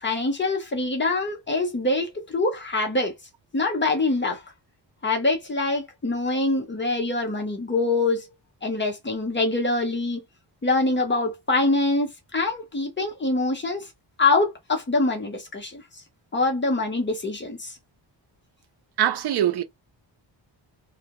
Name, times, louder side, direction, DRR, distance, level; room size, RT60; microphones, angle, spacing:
voice 1, 0.0-3.1 3.5-4.4 5.0-8.3 8.6-10.2 10.6-13.9 14.2-15.8 16.3-17.8, left 2 dB, 25° left, 0.7 m, -24 dB
voice 2, 19.0-19.6, right 11 dB, 60° right, 0.5 m, -22 dB
2.2 x 2.1 x 2.8 m
wide cardioid pair, 135°, 45 cm